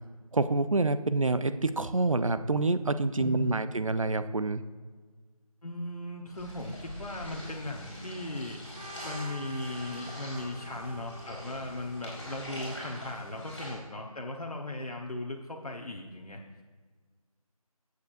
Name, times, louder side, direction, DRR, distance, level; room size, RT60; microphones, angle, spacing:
voice 1, 0.3-4.6, right 3 dB, 60° right, 12 dB, 0.5 m, -27 dB
voice 2, 3.2-3.6 5.6-8.6 9.0-16.4, left 2 dB, 75° left, 0 dB, 1.1 m, -37 dB
sound 1, 6.3-13.7, equal, ahead, 1.8 m, -44 dB
Trumpet, 8.7-12.9, right 1 dB, 85° right, 1.0 m, -48 dB
13.0 x 8.3 x 2.6 m, 1.5 s
figure-of-eight pair, 180°, 19 cm